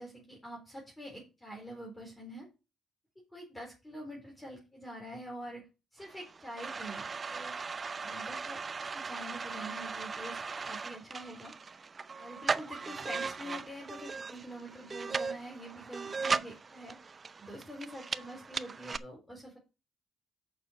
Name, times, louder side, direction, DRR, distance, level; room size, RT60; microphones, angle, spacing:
voice 1, 0.0-2.5 3.3-5.6 5.9-7.5 8.0-11.5 12.1-17.0 17.4-19.6, equal, 10° left, -1 dB, 4.0 m, -46 dB
sound 1, 6.0-19.0, right 4 dB, 35° right, 0.5 m, -38 dB
6.7 x 6.5 x 5.5 m, 0.29 s
cardioid pair, 90°, 0 cm